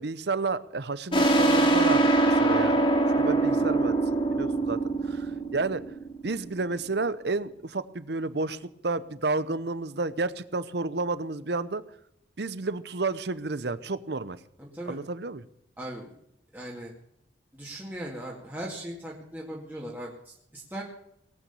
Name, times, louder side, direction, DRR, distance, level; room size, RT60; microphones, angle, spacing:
voice 1, 0.0-2.8 3.2-4.0 4.3-5.8 6.2-11.8 12.4-14.4 14.9-15.4, right 3 dB, 60° right, 16 dB, 0.8 m, -31 dB
sound 1, 1.1-6.4, right 2 dB, 30° left, 2.8 m, -23 dB
voice 2, 14.6-15.0 15.8-16.1 16.5-16.9 17.5-20.8, right 1 dB, 10° right, -4 dB, 2.2 m, -39 dB
18.5 x 9.1 x 7.1 m, 0.77 s
head